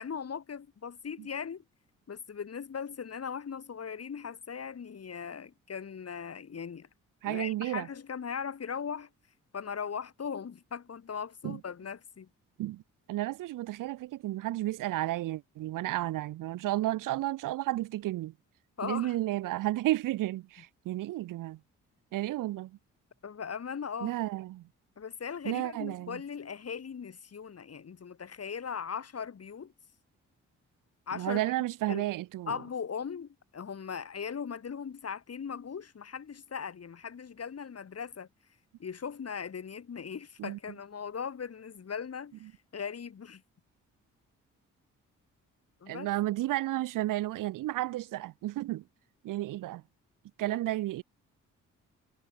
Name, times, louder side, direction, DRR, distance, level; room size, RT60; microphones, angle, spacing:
voice 1, 0.0-1.6 2.1-6.9 7.2-9.1 9.5-12.3 18.8-19.2 23.2-24.1 25.0-29.7 31.1-31.4 31.9-32.1 32.5-38.3 38.8-42.4 42.7-43.4 45.8-46.1 50.4-50.6, left 6 dB, 50° left, 3.4 m, -39 dB
voice 2, 7.2-7.9 11.4-11.6 12.6-12.8 13.1-18.3 18.8-21.6 22.1-22.7 24.0-24.6 25.4-26.2 31.1-32.6 40.4-40.6 45.9-48.8 49.2-49.8 50.4-51.0, right 16 dB, 90° right, 1.1 m, -32 dB
cardioid pair, 65°, 31 cm